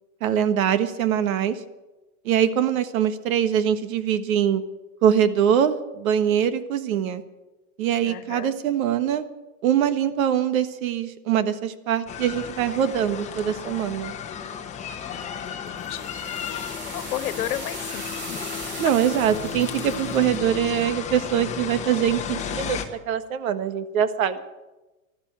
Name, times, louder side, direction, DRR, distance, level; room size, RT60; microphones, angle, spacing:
voice 1, 0.2-1.6 2.2-4.6 5.0-7.2 7.8-9.2 9.6-14.1 18.8-22.8 23.1-24.4, right 9 dB, 70° right, 12 dB, 1.5 m, -23 dB
voice 2, 8.0-8.5 15.1-16.2 16.9-18.4, left 12 dB, 90° left, 13 dB, 1.4 m, -33 dB
sound 1, 12.1-22.8, left 8 dB, 15° left, 1.1 m, -34 dB
sound 2, 15.2-20.4, right 2 dB, 25° right, 2.7 m, -39 dB
15.0 x 12.0 x 7.5 m, 1.1 s
supercardioid pair, 155°, 43 cm